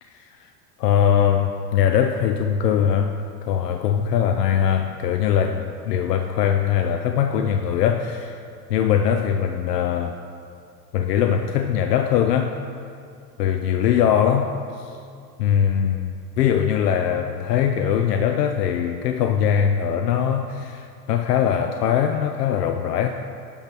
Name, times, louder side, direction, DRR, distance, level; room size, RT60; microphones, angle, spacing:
voice 1, 0.8-8.4 8.7-10.2 10.9-12.5 13.4-15.0 15.4-23.1, left 8 dB, 80° left, 6 dB, 0.6 m, -21 dB
10.5 x 3.6 x 6.0 m, 2.3 s
hypercardioid pair, 70°, 48 cm